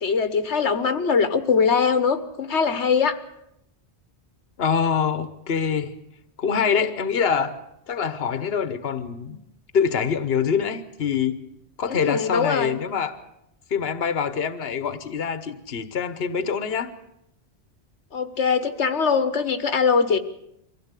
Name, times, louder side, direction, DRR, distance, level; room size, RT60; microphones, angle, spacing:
voice 1, 0.0-3.2 11.9-12.8 18.1-20.2, left 5 dB, 90° left, 10 dB, 1.5 m, -22 dB
voice 2, 4.6-5.9 6.4-7.6 7.9-9.4 9.7-11.4 11.8-13.2 13.7-16.9, left 6 dB, 65° left, 11 dB, 1.3 m, -25 dB
23.5 x 16.0 x 8.3 m, 0.79 s
omnidirectional pair, 1.1 m